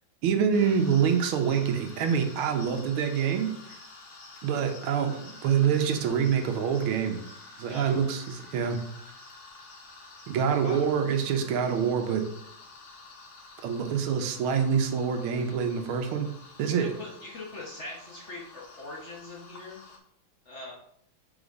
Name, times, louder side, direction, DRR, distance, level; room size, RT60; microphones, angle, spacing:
voice 1, 0.2-3.5 4.4-7.2 7.6-8.8 10.3-12.2 13.6-16.3 16.6-16.9, right 7 dB, 85° right, 6 dB, 1.6 m, -26 dB
sound 1, 0.5-20.0, left 3 dB, 75° left, 2.0 m, -49 dB
voice 2, 7.7-8.0 10.6-10.9 16.6-19.8 20.4-20.7, left 2 dB, 40° left, -3 dB, 1.1 m, -41 dB
4.9 x 4.1 x 5.2 m, 0.69 s
omnidirectional pair, 2.3 m